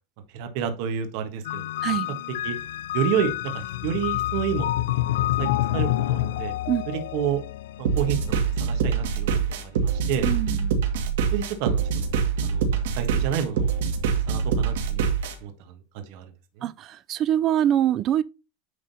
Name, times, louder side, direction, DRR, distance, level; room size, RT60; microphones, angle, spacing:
voice 1, 0.3-2.0 2.4-2.5 2.9-6.5 6.9-7.4 7.8-10.3 11.3-12.1 12.4-13.7 14.3-15.1 15.4-16.3 16.6-16.7, right 8 dB, 55° right, 1.6 m, -30 dB
sound 1, 1.4-8.7, left 14 dB, 85° left, 0.4 m, -28 dB
sound 2, 7.8-15.3, right 6 dB, 85° right, 2.2 m, -24 dB
voice 2, 10.2-10.7 16.6-18.2, right 11 dB, 30° right, 0.5 m, -24 dB
9.8 x 3.8 x 4.2 m
supercardioid pair, 160°, 0 cm